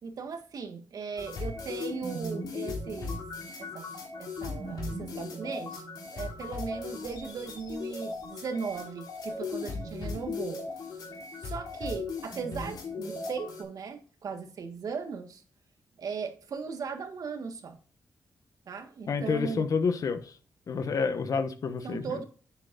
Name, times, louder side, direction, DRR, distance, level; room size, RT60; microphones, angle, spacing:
voice 1, 0.0-3.2 3.6-3.9 4.2-5.8 6.1-10.6 11.0-15.4 16.0-17.8 18.7-19.7 21.8-22.2, right 5 dB, 70° right, 1.6 m, -38 dB
sound 1, 1.2-13.6, left 3 dB, 90° left, 3.1 m, -37 dB
voice 2, 19.1-20.3 20.7-22.2, left 5 dB, 65° left, 1.2 m, -29 dB
9.8 x 8.1 x 2.6 m
cardioid pair, 80°, 7 cm